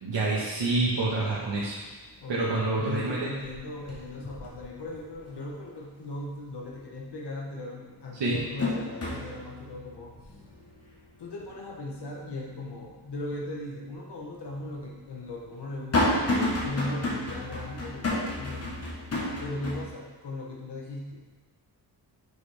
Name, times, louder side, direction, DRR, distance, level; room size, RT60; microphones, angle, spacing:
voice 1, 0.0-1.8 2.3-3.3 8.2-8.4, right 3 dB, 90° right, -7 dB, 1.4 m, -27 dB
sound 1, 1.2-1.6 2.0-2.8 3.1-5.4 5.8-5.9 7.3-7.4 7.9-13.1 13.5-13.6 14.5-19.8, left 1 dB, 35° left, 1.3 m, -32 dB
voice 2, 2.2-10.1 11.2-16.3 16.6-18.7 19.4-21.3, left 2 dB, 70° left, -1 dB, 1.0 m, -38 dB
6.2 x 5.2 x 3.4 m, 1.3 s
wide cardioid pair, 155°, 42 cm